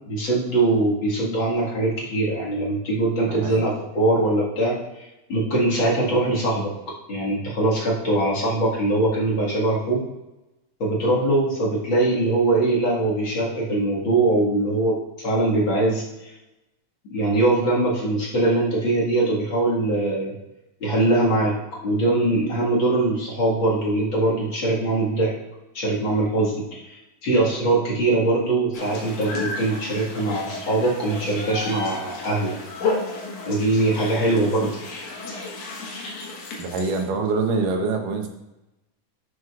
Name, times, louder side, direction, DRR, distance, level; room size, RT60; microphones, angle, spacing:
voice 1, 0.1-4.8 5.3-6.7 7.1-10.0 10.8-16.0 17.1-20.3 20.8-21.6 21.8-25.3 25.7-32.5 33.5-34.8, right 2 dB, 45° left, -5 dB, 2.1 m, -22 dB
voice 2, 3.3-3.6 36.6-38.3, right 4 dB, 75° right, 4 dB, 2.5 m, -25 dB
sound 1, 28.7-37.0, left 3 dB, 65° left, 2.6 m, -32 dB
12.0 x 6.3 x 2.4 m, 0.98 s
omnidirectional pair, 3.9 m